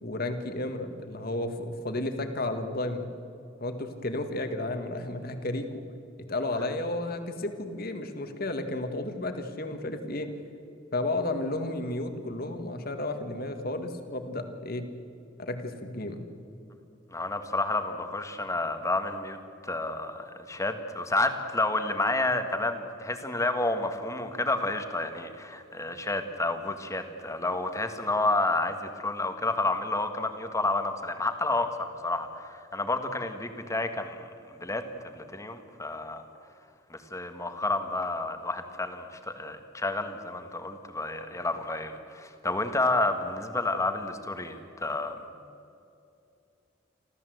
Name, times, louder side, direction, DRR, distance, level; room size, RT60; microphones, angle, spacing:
voice 1, 0.0-3.0 3.6-5.8 6.2-10.3 10.9-14.9 15.4-16.3, left 2 dB, 50° left, 7 dB, 1.8 m, -32 dB
voice 2, 17.1-19.4 19.6-34.2 34.6-36.2 36.9-45.2, left 2 dB, 15° left, 7 dB, 1.6 m, -30 dB
28.0 x 14.0 x 7.9 m, 2.6 s
head